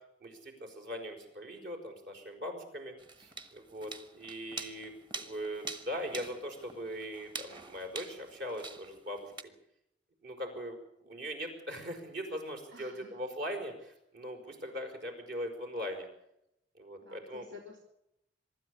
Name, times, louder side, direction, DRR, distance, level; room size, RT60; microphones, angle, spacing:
voice 1, 0.2-9.3 10.2-16.1 16.8-17.5, equal, 60° right, 3 dB, 5.2 m, -40 dB
sound 1, 3.0-9.4, right 3 dB, 25° right, 1.3 m, -45 dB
voice 2, 12.7-13.2 17.0-17.8, left 3 dB, 80° right, 0 dB, 3.8 m, -50 dB
24.0 x 13.0 x 8.3 m, 0.80 s
head